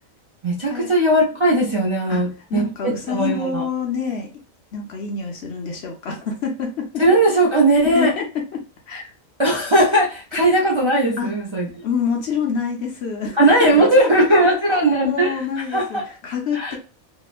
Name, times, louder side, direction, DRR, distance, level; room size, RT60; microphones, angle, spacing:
voice 1, 0.4-3.6 7.0-8.1 9.4-11.7 13.4-15.4 15.7-16.0 16.5-16.8, right 1 dB, 40° right, -5 dB, 0.4 m, -18 dB
voice 2, 2.5-4.3 4.7-7.0 7.9-9.1 11.2-11.3 11.8-16.8, left 6 dB, 60° left, 2 dB, 0.8 m, -27 dB
2.9 x 2.1 x 2.3 m, 0.36 s
omnidirectional pair, 1.4 m